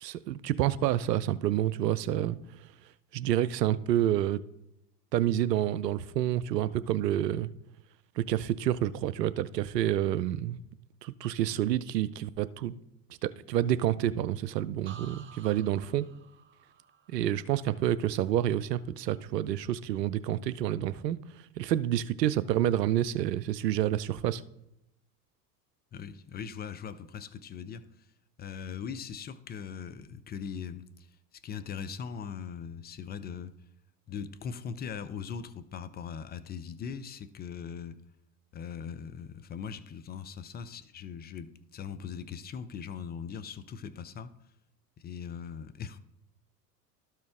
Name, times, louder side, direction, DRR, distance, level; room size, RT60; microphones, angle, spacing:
voice 1, 0.0-2.4 3.1-4.4 5.1-7.5 8.2-10.6 11.0-12.7 13.2-16.1 17.1-21.2 21.6-24.4, right 12 dB, 85° right, 0.5 m, -28 dB
sound 1, 14.9-18.7 19.0-19.5, right 6 dB, 25° right, 0.7 m, -54 dB
voice 2, 25.9-28.1 28.4-33.5 34.1-38.0 38.5-44.5 45.0-46.0, left 7 dB, 20° left, 0.4 m, -40 dB
12.5 x 4.5 x 3.6 m
hypercardioid pair, 85°, 48 cm